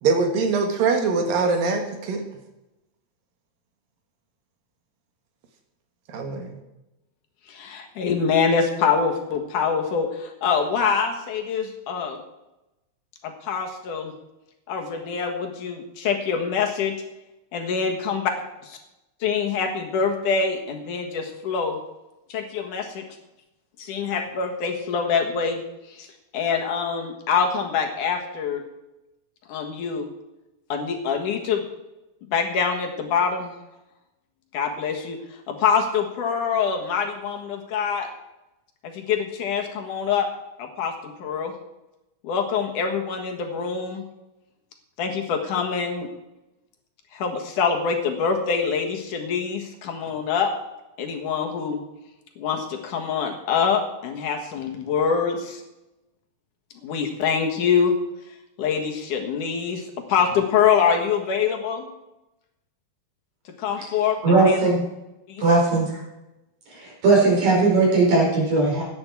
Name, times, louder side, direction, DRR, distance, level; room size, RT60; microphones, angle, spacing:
voice 1, 0.0-2.2 6.1-6.6, right 4 dB, 85° right, 4 dB, 3.3 m, -23 dB
voice 2, 7.5-12.2 13.2-14.1 14.7-17.0 17.5-18.3 19.2-21.8 22.3-23.0 23.8-25.6 25.9-26.1 26.3-28.6 29.5-30.1 30.7-31.6 32.3-33.5 34.5-35.2 35.5-38.1 38.8-40.3 40.6-41.5 42.2-44.0 45.0-46.1 47.1-50.5 51.0-51.8 52.4-55.6 56.8-58.0 58.6-59.8 60.1-61.9 63.6-64.6 65.3-65.4, left 6 dB, 65° left, 3 dB, 2.9 m, -25 dB
voice 3, 64.2-64.8 65.4-66.0 66.7-68.8, right 3 dB, 55° right, -3 dB, 6.1 m, -19 dB
17.0 x 10.5 x 4.8 m, 0.96 s
omnidirectional pair, 3.9 m